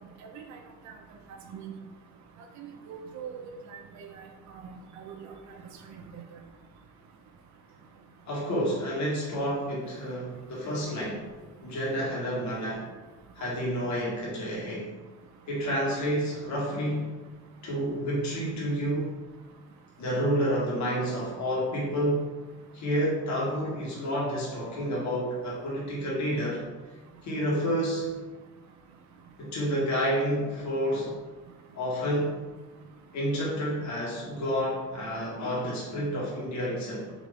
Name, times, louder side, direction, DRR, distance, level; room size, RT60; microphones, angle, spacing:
voice 1, 0.2-0.6 1.5-1.7 2.6-4.1 4.6-4.7 5.0-5.3 6.1-6.2, right 7 dB, 65° right, 4 dB, 0.6 m, -42 dB
voice 2, 8.3-11.3 11.6-12.9 13.3-14.9 15.5-17.1 17.6-19.2 20.0-22.3 22.7-26.6 27.2-28.2 29.4-31.2 31.7-32.4 33.1-37.1, equal, 65° left, -5 dB, 1.5 m, -29 dB
3.9 x 2.9 x 3.3 m, 1.3 s
cardioid pair, 90°, 30 cm